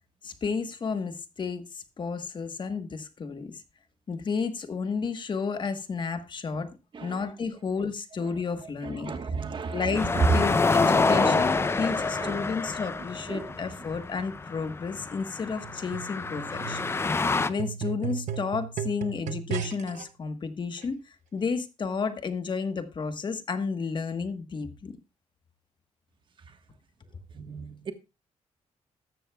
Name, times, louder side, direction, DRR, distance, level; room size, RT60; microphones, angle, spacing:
voice 1, 0.2-3.6 4.1-9.1 9.7-16.9 17.2-25.0, left 5 dB, 40° left, 1.3 m, -32 dB
voice 2, 8.8-11.8 12.2-12.5 13.3-13.5 26.5-26.6 27.3-27.9, right 4 dB, 40° right, 1.3 m, -32 dB
sound 1, 9.9-17.5, left 4 dB, 20° left, 0.5 m, -27 dB
sound 2, 15.6-20.0 20.8-20.9, right 9 dB, 90° right, 0.9 m, -36 dB
13.5 x 12.5 x 2.3 m
cardioid pair, 130°, 12 cm